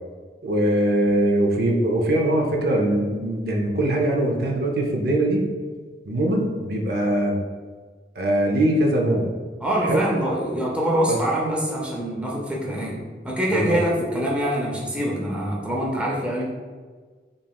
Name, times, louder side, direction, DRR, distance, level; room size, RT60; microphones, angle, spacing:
voice 1, 0.4-5.4 6.1-7.4 8.2-9.3 9.8-10.0 11.1-11.2 13.5-13.8, right 1 dB, 55° right, 1 dB, 0.5 m, -22 dB
voice 2, 9.6-13.0 13.2-16.4, right 1 dB, 5° right, -4 dB, 0.5 m, -24 dB
5.3 x 2.9 x 2.3 m, 1.5 s
head